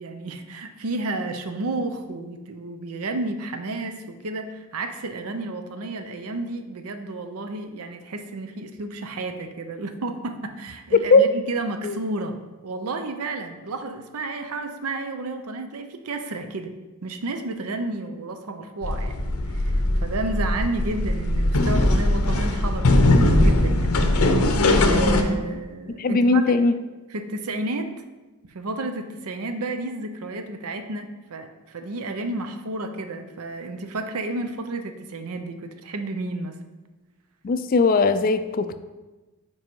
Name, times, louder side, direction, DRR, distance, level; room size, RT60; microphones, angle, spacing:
voice 1, 0.0-12.4 12.6-16.7 17.0-19.1 19.5-23.9 24.8-26.5 27.1-27.9 28.5-36.6, right 2 dB, 80° right, 8 dB, 0.6 m, -31 dB
voice 2, 10.9-11.3 11.8-12.0 26.0-26.8 37.4-38.8, left 3 dB, 40° left, 11 dB, 0.3 m, -19 dB
sound 1, 18.8-25.2, left 1 dB, 85° left, 0.7 m, -20 dB
5.3 x 4.7 x 5.3 m, 1.2 s
head